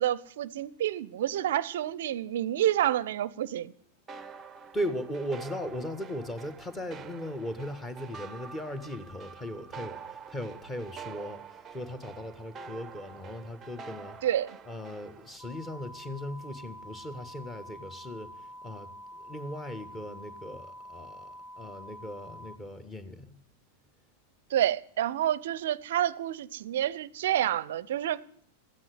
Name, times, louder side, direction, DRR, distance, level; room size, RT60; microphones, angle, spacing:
voice 1, 0.0-3.7 14.2-14.6 24.5-28.2, right 12 dB, 55° right, 0.6 m, -28 dB
sound 1, 4.1-15.4, right 6 dB, 20° right, 0.7 m, -46 dB
voice 2, 4.7-14.2 14.7-18.3 18.6-23.4, equal, 15° left, 1.6 m, -38 dB
sound 2, 15.4-22.6, equal, 35° left, 2.4 m, -47 dB
14.5 x 9.7 x 9.8 m
figure-of-eight pair, 90°, 0 cm